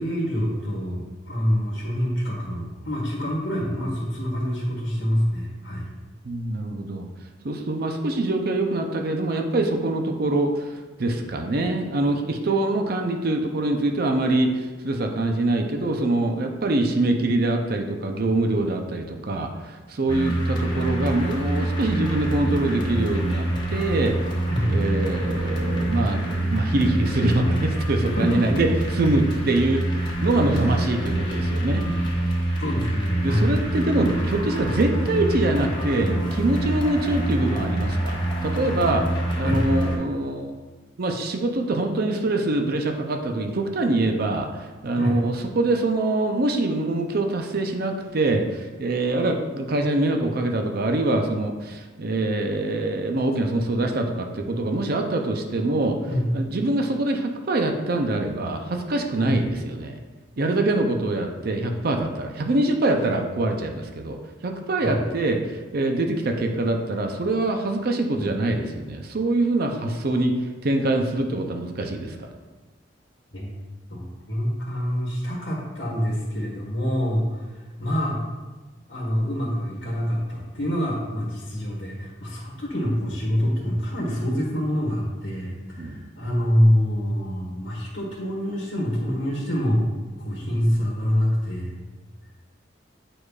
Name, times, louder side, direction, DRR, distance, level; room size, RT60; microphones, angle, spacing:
voice 1, 0.0-5.9 24.5-24.7 28.1-28.4 32.6-33.5 39.4-39.6 45.0-45.2 56.1-56.3 59.2-59.3 64.8-65.0 68.2-68.3 73.3-73.5 73.9-78.3 78.9-89.8 90.2-91.7, equal, 85° left, -6 dB, 1.5 m, -26 dB
voice 2, 6.2-7.1 7.4-10.7 11.0-24.2 24.6-28.7 29.0-31.8 33.2-39.0 39.4-40.5 41.0-56.0 56.3-60.0 60.4-64.2 64.4-70.3 70.6-72.3 85.8-86.0, right 2 dB, 55° right, 4 dB, 0.6 m, -24 dB
sound 1, 20.1-40.0, right 1 dB, 25° left, 1.1 m, -26 dB
8.7 x 4.8 x 2.4 m, 1.3 s
head